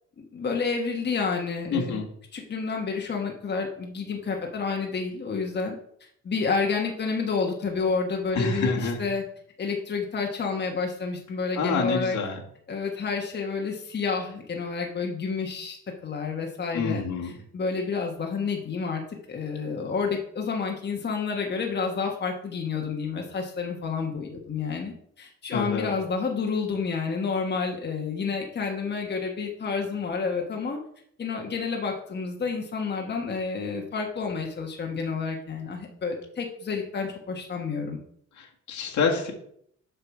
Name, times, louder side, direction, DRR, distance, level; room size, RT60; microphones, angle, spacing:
voice 1, 0.2-2.0 2.3-5.8 6.2-9.2 9.6-12.2 12.7-15.8 16.0-17.0 17.5-19.0 19.3-30.8 31.2-38.0, left 5 dB, 35° left, 1 dB, 1.2 m, -29 dB
voice 2, 1.7-2.1 8.3-9.0 11.6-12.4 16.7-17.3 25.5-25.9 38.4-39.3, left 4 dB, 75° left, 0 dB, 1.9 m, -27 dB
6.8 x 5.9 x 4.7 m, 0.67 s
cardioid pair, 120°, 29 cm